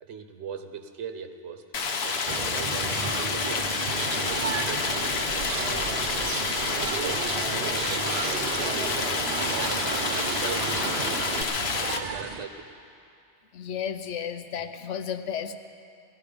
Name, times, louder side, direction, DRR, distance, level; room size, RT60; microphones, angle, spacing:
voice 1, 0.0-1.6 2.0-6.0 6.7-9.6 10.1-10.8 12.0-12.7, right 7 dB, 80° right, 7 dB, 1.1 m, -40 dB
Stream, 1.7-12.0, left 4 dB, 65° left, 1.1 m, -29 dB
sound 1, 2.3-12.5, right 5 dB, 45° right, 0.6 m, -37 dB
Bird, 3.9-11.4, right 5 dB, 65° right, 1.0 m, -33 dB
voice 2, 13.5-15.6, left 8 dB, 85° left, 9 dB, 1.1 m, -33 dB
17.5 x 13.0 x 5.1 m, 2.5 s
omnidirectional pair, 1.2 m